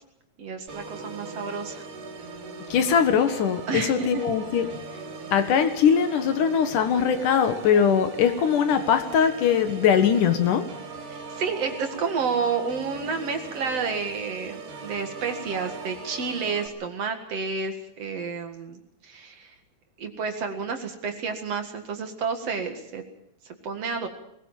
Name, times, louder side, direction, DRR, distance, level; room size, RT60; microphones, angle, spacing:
voice 1, 0.4-1.8 3.7-4.2 11.1-19.5 20.0-23.0 23.6-24.1, right 5 dB, 55° right, 6 dB, 2.7 m, -30 dB
Organ, 0.7-16.7, right 4 dB, 75° right, 4.6 m, -39 dB
voice 2, 2.7-4.7 5.3-10.6, left 7 dB, 75° left, 8 dB, 3.0 m, -21 dB
20.5 x 19.0 x 7.4 m, 0.76 s
omnidirectional pair, 3.7 m